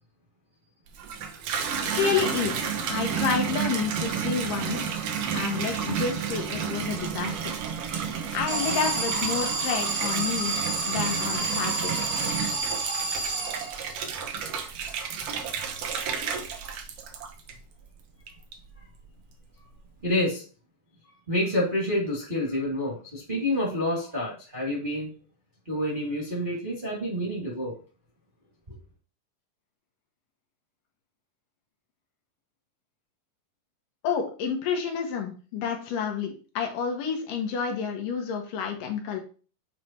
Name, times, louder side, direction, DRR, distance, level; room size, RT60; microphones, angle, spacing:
Water tap faucet / Bathtub (filling or washing), 0.9-17.8 18.3-18.8, right 7 dB, 70° right, 1.5 m, -31 dB
voice 1, 1.9-5.0 5.3-7.6 8.3-10.5 10.8-12.2 34.0-39.2, left 6 dB, 75° left, 2.8 m, -29 dB
Alarm, 8.5-14.0, right 3 dB, 55° right, 2.0 m, -29 dB
voice 2, 15.1-15.5 20.0-20.4 21.3-25.1 25.6-27.7 28.7-28.8, left 1 dB, 20° right, 1.4 m, -29 dB
8.5 x 3.3 x 4.3 m
omnidirectional pair, 3.9 m